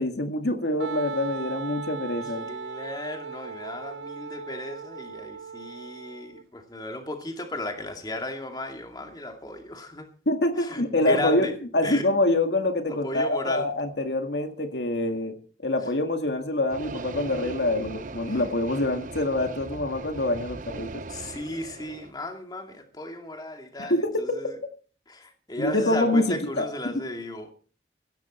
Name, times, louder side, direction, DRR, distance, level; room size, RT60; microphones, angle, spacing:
voice 1, 0.0-2.5 10.3-21.0 23.8-24.4 25.6-27.0, left 1 dB, 70° left, 1.9 m, -26 dB
Wind instrument woodwind instrument, 0.8-6.4, right 5 dB, 80° right, 0.6 m, -38 dB
voice 2, 2.3-10.1 10.6-11.5 11.8-12.1 12.9-13.7 18.3-18.4 21.1-24.5 25.1-27.5, left 1 dB, 20° left, 2.4 m, -35 dB
sound 1, 16.7-22.1, right 3 dB, 45° right, 0.8 m, -39 dB
16.5 x 14.0 x 4.4 m
head